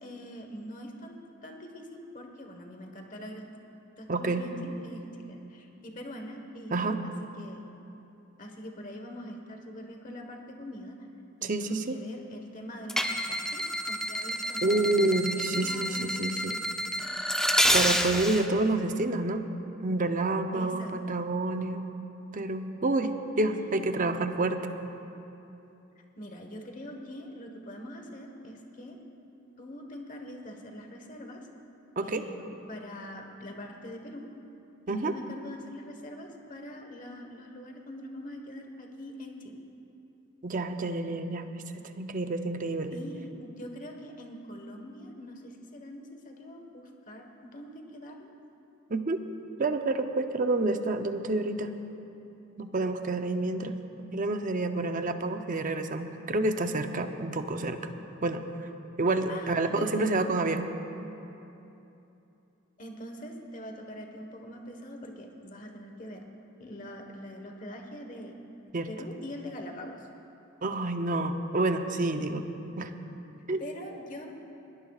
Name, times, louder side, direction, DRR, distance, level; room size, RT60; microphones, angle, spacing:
voice 1, 0.0-3.6 4.0-7.1 7.4-7.7 8.4-11.0 11.4-14.7 15.1-16.3 20.5-20.9 23.4-23.8 26.2-29.0 29.6-31.5 32.0-34.3 34.9-39.6 42.9-48.3 59.3-60.0 62.8-66.2 66.6-68.4 68.9-70.1 73.6-74.3, equal, 40° left, 3 dB, 1.3 m, -43 dB
voice 2, 4.1-4.4 6.7-7.0 11.4-12.0 14.6-16.6 17.7-19.4 19.8-21.9 22.3-24.6 32.0-32.3 34.9-35.2 40.4-41.5 41.7-43.0 48.9-49.2 49.6-51.7 52.6-57.9 58.2-58.4 59.0-60.7 68.7-68.9 70.6-72.5 72.8-72.9 73.5-73.6, right 2 dB, 40° right, 7 dB, 0.6 m, -28 dB
sound 1, 12.9-18.5, equal, 5° left, 0.6 m, -29 dB
21.0 x 17.5 x 2.4 m, 2.9 s
head